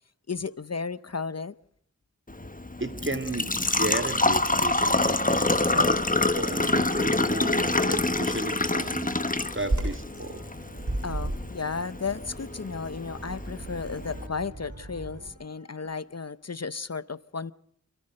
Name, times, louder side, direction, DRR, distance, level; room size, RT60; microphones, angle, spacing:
voice 1, 0.3-1.5 5.7-6.0 11.0-17.5, left 5 dB, 55° left, 0.7 m, -34 dB
Engine / Trickle dribble / Fill (with liquid), 2.3-14.3, left 2 dB, 30° left, 1.2 m, -27 dB
voice 2, 2.8-9.1 9.5-10.4, right 2 dB, 40° right, 2.5 m, -34 dB
sound 1, 8.8-16.2, left 1 dB, 25° right, 7.0 m, -54 dB
Bird vocalization bird call bird song, 9.6-15.3, right 1 dB, 75° right, 5.8 m, -35 dB
26.5 x 15.0 x 6.5 m
wide cardioid pair, 45°, 30 cm